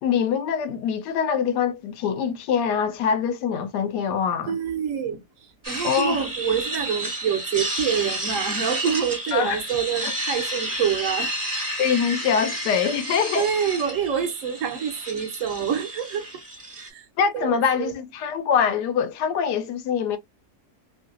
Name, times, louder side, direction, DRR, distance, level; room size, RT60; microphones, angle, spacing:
voice 1, 0.0-4.5 5.8-6.2 9.3-9.6 11.8-13.5 17.2-20.2, left 7 dB, 85° left, 1.2 m, -24 dB
voice 2, 4.5-11.7 13.3-16.4 16.7-17.1 17.3-17.9, right 8 dB, 65° right, 0.9 m, -27 dB
sound 1, 5.6-16.9, right 1 dB, 20° right, 0.5 m, -31 dB
3.2 x 2.6 x 2.5 m
omnidirectional pair, 1.7 m